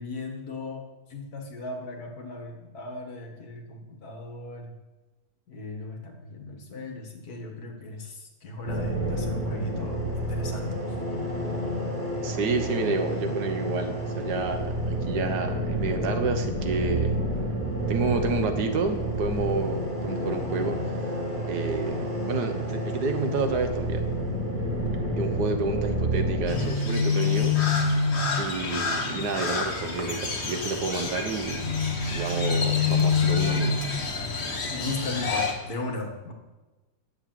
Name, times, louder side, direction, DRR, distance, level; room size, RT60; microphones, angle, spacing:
voice 1, 0.0-4.8 5.5-10.8 34.7-36.3, left 3 dB, 70° left, 3 dB, 2.1 m, -37 dB
sound 1, 8.7-26.7, right 1 dB, 30° right, 3.6 m, -29 dB
voice 2, 12.2-17.2 17.9-21.2 21.5-24.1 25.2-27.6 28.3-31.8 32.1-33.8, right 4 dB, 80° right, 6 dB, 1.7 m, -30 dB
Crow, 26.5-35.5, left 5 dB, 45° left, 1.5 m, -26 dB
9.6 x 7.3 x 7.6 m, 1.2 s
omnidirectional pair, 1.7 m